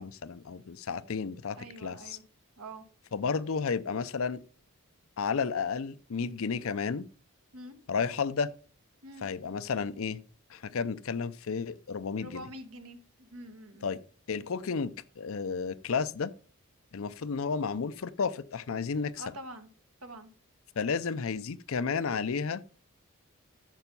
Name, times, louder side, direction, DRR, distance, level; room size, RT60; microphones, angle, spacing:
voice 1, 0.0-2.2 3.1-4.4 5.2-7.1 7.9-8.5 9.2-10.2 10.5-12.5 13.8-14.0 14.3-16.3 16.9-19.2 20.8-22.6, left 5 dB, 70° left, 0.5 m, -32 dB
voice 2, 1.6-2.2 2.6-2.8 7.5-7.8 9.0-9.3 12.2-13.9 19.2-19.7 20.0-20.3, right 1 dB, 80° right, 1.5 m, -45 dB
9.1 x 6.8 x 5.3 m
head